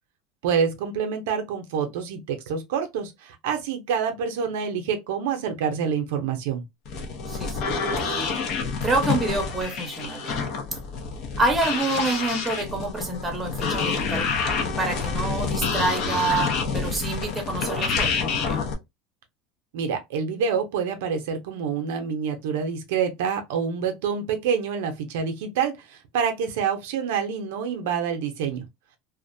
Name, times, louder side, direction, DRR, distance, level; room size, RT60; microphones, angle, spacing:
voice 1, 0.4-6.6 19.7-28.7, right 7 dB, 80° right, 0.5 m, -27 dB
sound 1, 6.9-18.7, left 5 dB, 55° left, 0.7 m, -28 dB
voice 2, 7.3-7.7 8.0-8.4 8.8-10.3 11.4-14.3 14.8-18.1 18.5-18.6, right 2 dB, 10° right, 0.9 m, -27 dB
2.4 x 2.1 x 2.5 m
supercardioid pair, 130°, 0 cm